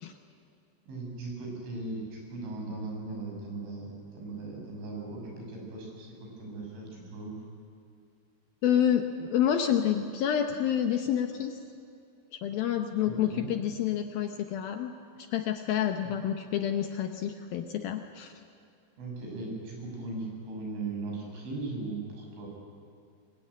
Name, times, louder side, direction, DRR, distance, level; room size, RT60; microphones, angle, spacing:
voice 1, 0.9-7.4 13.0-13.6 16.0-16.1 19.0-22.5, right 3 dB, 85° right, 0 dB, 8.8 m, -38 dB
voice 2, 8.6-11.6 12.4-14.9 15.3-18.3, left 9 dB, 70° left, 5 dB, 2.3 m, -28 dB
24.5 x 23.0 x 9.8 m, 2.5 s
omnidirectional pair, 5.4 m